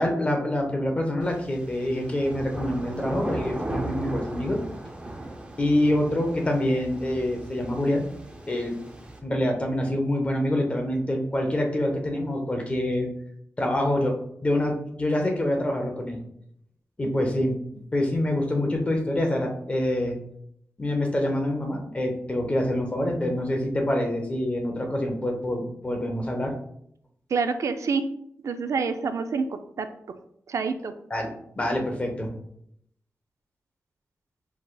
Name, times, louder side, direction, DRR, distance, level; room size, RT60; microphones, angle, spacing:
voice 1, 0.0-4.6 5.6-8.1 8.5-8.7 9.2-13.1 13.6-14.2 14.4-16.2 17.0-17.6 17.9-20.1 20.8-26.5 31.1-31.3 31.5-32.3, left 1 dB, 25° left, 2 dB, 0.7 m, -26 dB
sound 1, 1.2-9.2, right 1 dB, 20° right, 0.5 m, -37 dB
voice 2, 27.3-28.1 28.4-30.2 30.5-30.9, right 5 dB, 75° right, 8 dB, 0.3 m, -28 dB
4.7 x 3.8 x 2.2 m, 0.70 s
wide cardioid pair, 170°, 5 cm